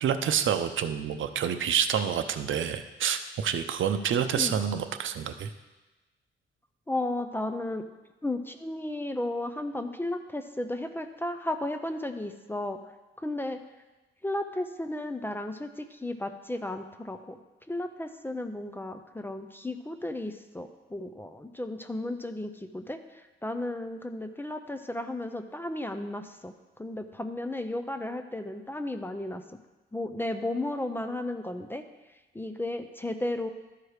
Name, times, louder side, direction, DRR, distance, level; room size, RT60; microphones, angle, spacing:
voice 1, 0.0-5.5, right 8 dB, 70° right, 9 dB, 0.6 m, -28 dB
voice 2, 6.9-7.8 8.2-12.8 13.2-13.6 14.2-17.4 17.7-26.5 26.8-29.4 29.9-31.8 32.3-33.5, left 1 dB, 10° left, 8 dB, 0.4 m, -34 dB
12.5 x 4.8 x 4.8 m, 1.1 s
wide cardioid pair, 140°, 21 cm